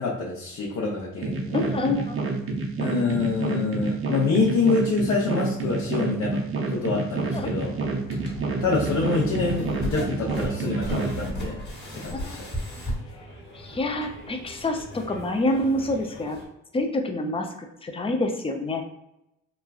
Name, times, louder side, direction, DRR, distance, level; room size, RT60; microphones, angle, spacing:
voice 1, 0.0-1.7 2.8-7.7 8.6-11.6 11.9-12.4, left 4 dB, 60° left, -4 dB, 0.6 m, -26 dB
sound 1, 1.2-11.1, right 3 dB, 45° right, 0.5 m, -28 dB
voice 2, 1.5-2.2 7.3-7.5 12.1-12.5 13.5-16.4 16.7-18.8, left 1 dB, 20° left, 4 dB, 0.4 m, -27 dB
sound 2, 7.3-16.5, right 1 dB, 35° left, 1.1 m, -36 dB
3.0 x 2.3 x 2.3 m, 0.85 s
cardioid pair, 90°, 30 cm